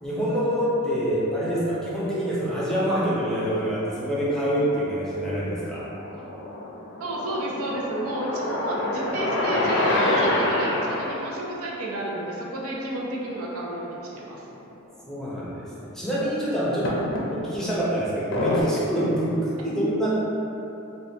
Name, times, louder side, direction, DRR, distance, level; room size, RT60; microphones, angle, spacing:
voice 1, 0.0-5.8 15.1-17.0 17.3-20.1, equal, ahead, -9 dB, 0.6 m, -26 dB
sound 1, 3.0-3.6 4.4-5.2 5.6-11.3 13.8-13.9 14.2-14.3 15.1-15.2 16.8-17.7 18.3-18.6, left 1 dB, 55° left, 0.5 m, -27 dB
voice 2, 7.0-14.5, right 1 dB, 75° right, -4 dB, 0.6 m, -31 dB
4.1 x 2.3 x 3.3 m, 3.0 s
head